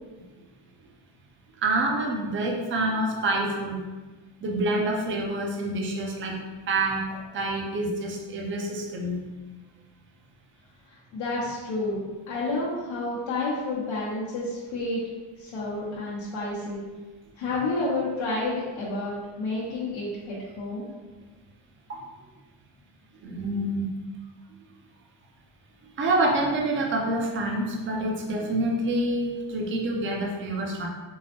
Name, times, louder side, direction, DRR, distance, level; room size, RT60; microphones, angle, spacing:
voice 1, 1.6-3.8 4.4-6.4 6.7-9.2 15.7-15.9 21.9-22.0 23.2-23.9 26.0-30.9, right 1 dB, 30° right, 0 dB, 0.5 m, -27 dB
voice 2, 11.1-15.0 15.4-16.8 17.4-20.9, left 2 dB, 80° left, -7 dB, 0.8 m, -30 dB
4.5 x 2.1 x 2.9 m, 1.3 s
cardioid pair, 140°, 46 cm